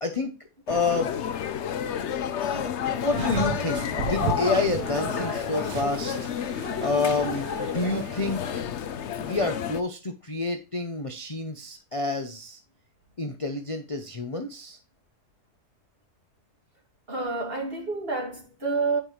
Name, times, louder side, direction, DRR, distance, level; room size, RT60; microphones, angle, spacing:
sound 1, 0.7-9.8, left 8 dB, 55° left, 0.8 m, -30 dB
voice 1, 0.7-1.1 2.5-6.2 6.8-8.6 9.2-12.6 13.2-14.8, left 3 dB, 25° left, 0.8 m, -29 dB
sound 2, 3.1-8.6, right 6 dB, 85° right, 1.6 m, -34 dB
voice 2, 17.1-19.0, right 3 dB, 35° right, 2.7 m, -29 dB
10.0 x 5.2 x 3.1 m
omnidirectional pair, 1.7 m